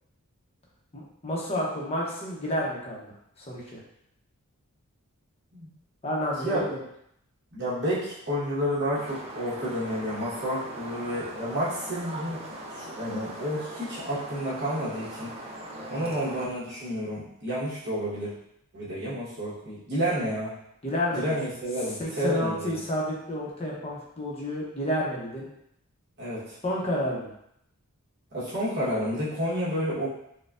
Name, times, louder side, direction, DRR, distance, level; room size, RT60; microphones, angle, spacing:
voice 1, 0.9-3.1 3.4-3.8 6.0-6.8 15.9-16.1 20.8-21.4 22.0-25.5 26.6-27.3, equal, 30° left, -4 dB, 0.7 m, -30 dB
voice 2, 7.5-12.4 12.7-15.3 15.9-18.3 18.7-20.5 21.1-22.8 26.2-26.6 28.3-30.1, equal, 50° right, -9 dB, 1.2 m, -30 dB
sound 1, 8.9-16.5, right 1 dB, 30° right, 0.4 m, -40 dB
4.1 x 2.2 x 2.5 m, 0.76 s
head